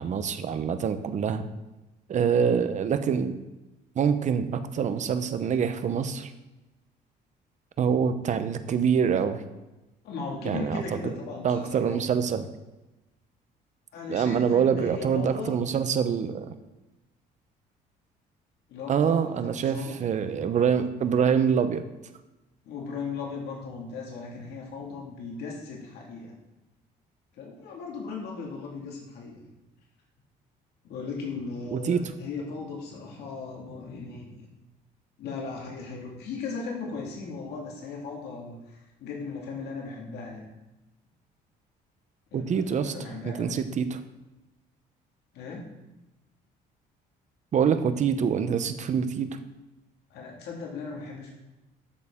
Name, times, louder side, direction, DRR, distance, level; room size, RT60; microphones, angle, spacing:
voice 1, 0.0-1.4 2.1-3.4 4.0-6.3 7.8-9.4 10.4-11.1 11.4-12.4 14.1-16.5 18.9-21.8 31.7-32.0 42.3-42.9 43.2-44.0 47.5-49.3, right 7 dB, 45° right, 10 dB, 0.9 m, -25 dB
voice 2, 10.0-12.0 13.9-15.5 18.7-20.0 22.6-26.4 27.3-29.4 30.8-34.3 35.2-40.5 42.3-43.6 45.3-45.6 50.1-51.3, left 4 dB, 80° left, -1 dB, 2.1 m, -37 dB
12.5 x 6.6 x 3.7 m, 1.0 s
cardioid pair, 110°, 17 cm